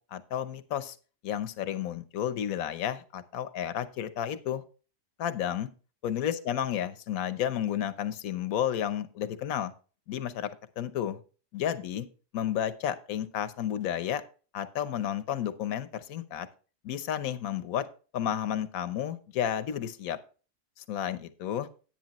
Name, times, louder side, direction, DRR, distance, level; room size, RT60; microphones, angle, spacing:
voice 1, 0.1-1.0 1.2-4.6 5.2-5.7 6.0-9.7 10.1-10.5 10.8-11.2 11.5-12.0 12.3-14.2 14.5-16.5 16.8-17.8 18.1-20.2 20.8-21.7, left 10 dB, 65° left, 12 dB, 1.2 m, -32 dB
10.5 x 9.5 x 3.0 m, 0.36 s
omnidirectional pair, 1.7 m